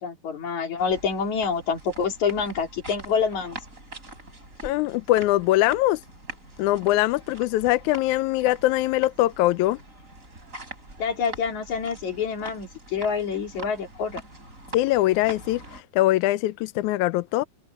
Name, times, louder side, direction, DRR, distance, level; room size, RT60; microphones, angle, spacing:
voice 1, 0.0-3.6 11.0-14.2, left 6 dB, 55° left, 4.2 m, -27 dB
sound 1, 0.8-15.8, right 2 dB, 20° right, 7.6 m, -43 dB
voice 2, 4.6-6.0 6.6-9.8 14.7-17.4, left 16 dB, 85° left, 1.8 m, -22 dB
omnidirectional pair, 4.0 m